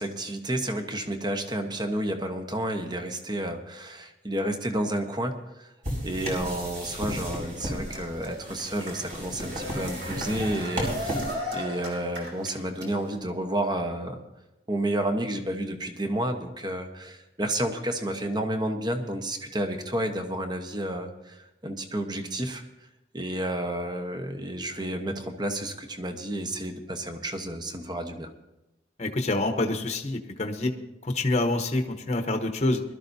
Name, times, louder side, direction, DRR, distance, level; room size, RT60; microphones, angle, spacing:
voice 1, 0.0-5.7 6.0-14.2 14.7-22.6 23.1-28.3, right 1 dB, 25° right, 5 dB, 1.1 m, -31 dB
sound 1, 5.8-11.3, equal, 50° right, 4.6 m, -34 dB
Cheering, 6.3-13.2, equal, 75° right, 3.4 m, -38 dB
voice 2, 29.0-30.7 31.0-32.8, left 2 dB, 40° left, 6 dB, 1.0 m, -27 dB
21.5 x 13.0 x 2.7 m, 0.95 s
head